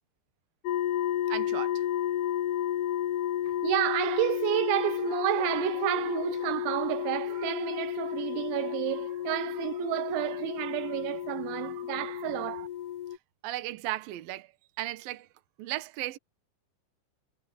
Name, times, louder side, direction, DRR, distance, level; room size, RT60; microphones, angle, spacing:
sound 1, 0.7-13.2, left 11 dB, 70° left, 2.6 m, -32 dB
voice 1, 1.3-1.9 13.4-14.5 14.8-15.3 15.6-16.2, right 16 dB, 65° right, 2.4 m, -35 dB
voice 2, 3.6-12.7, right 18 dB, 85° right, 2.7 m, -30 dB
omnidirectional pair, 5.5 m